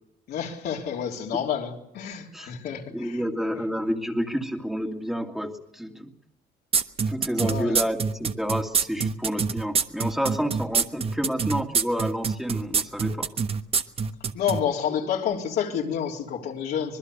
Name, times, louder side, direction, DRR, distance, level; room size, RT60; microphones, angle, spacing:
voice 1, 0.3-3.6 7.4-7.8 14.3-17.0, left 8 dB, 70° left, 3.6 m, -29 dB
voice 2, 2.9-6.1 7.1-13.3, equal, ahead, 2.2 m, -29 dB
sound 1, 6.7-14.6, right 6 dB, 35° right, 1.2 m, -25 dB
25.0 x 21.0 x 6.8 m
cardioid pair, 110°, 17 cm